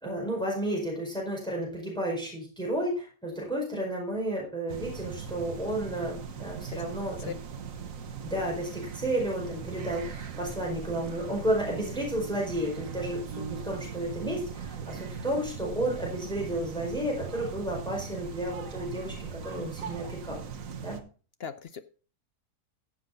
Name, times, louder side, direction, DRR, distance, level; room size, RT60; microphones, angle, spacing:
voice 1, 0.0-7.4 8.2-20.4 20.8-21.0, right 1 dB, ahead, -2 dB, 4.9 m, -32 dB
sound 1, 4.7-21.0, right 6 dB, 55° right, 1.5 m, -39 dB
voice 2, 21.4-21.8, left 7 dB, 55° left, 11 dB, 0.7 m, -38 dB
15.0 x 7.3 x 4.0 m, 0.38 s
omnidirectional pair, 1.8 m